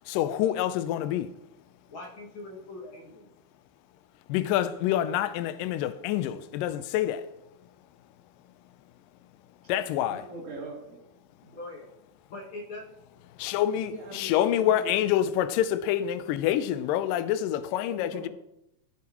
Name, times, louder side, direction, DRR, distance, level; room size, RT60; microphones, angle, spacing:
voice 1, 0.1-1.3 4.3-7.3 9.7-10.3 13.4-18.3, left 11 dB, 80° left, 2.0 m, -27 dB
voice 2, 1.9-3.3 11.5-11.9 12.3-12.8, left 2 dB, 55° left, 1.4 m, -41 dB
voice 3, 10.1-11.1 11.4-11.5 13.9-14.9 17.8-18.3, right 1 dB, 40° right, 3.6 m, -42 dB
14.5 x 9.7 x 3.0 m
omnidirectional pair, 4.6 m